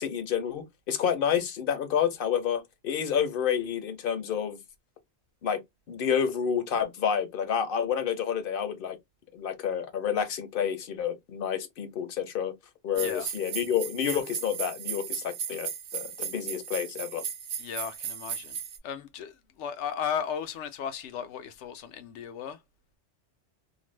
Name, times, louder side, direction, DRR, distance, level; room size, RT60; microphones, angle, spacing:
voice 1, 0.0-4.6 5.4-5.6 5.9-9.0 9.3-12.5 12.8-17.2, left 8 dB, 60° left, 0.7 m, -29 dB
sound 1, 12.9-18.8, right 8 dB, 70° right, 0.8 m, -36 dB
voice 2, 13.0-13.3 17.6-18.6 18.8-22.6, left 8 dB, 85° left, 0.9 m, -35 dB
2.5 x 2.1 x 3.1 m
omnidirectional pair, 1.2 m